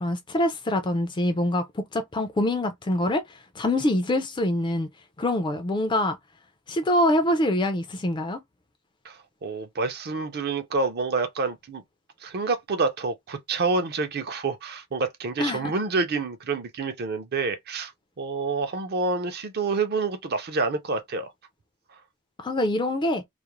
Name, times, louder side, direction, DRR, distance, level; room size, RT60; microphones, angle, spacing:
voice 1, 0.0-4.9 5.2-6.2 6.7-8.4 15.4-15.7 22.4-23.2, left 1 dB, 20° left, 0.4 m, -25 dB
voice 2, 9.0-11.8 12.2-17.9 18.2-21.3, right 4 dB, 45° right, 0.5 m, -28 dB
2.4 x 2.0 x 2.9 m
head